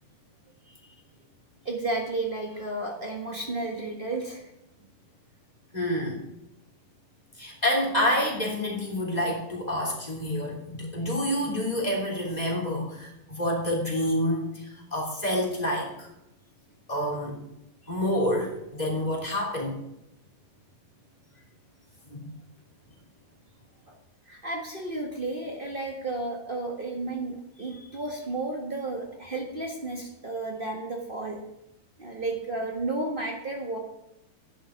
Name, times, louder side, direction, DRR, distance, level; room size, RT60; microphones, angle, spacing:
voice 1, 1.6-4.4 24.3-31.4 32.0-33.8, right 2 dB, 75° right, 1 dB, 0.5 m, -32 dB
voice 2, 5.7-6.2 7.4-16.1 16.9-17.4 17.9-19.8 22.1-22.3, left 1 dB, 10° left, -2 dB, 3.3 m, -28 dB
12.0 x 10.5 x 5.2 m, 0.85 s
omnidirectional pair, 3.8 m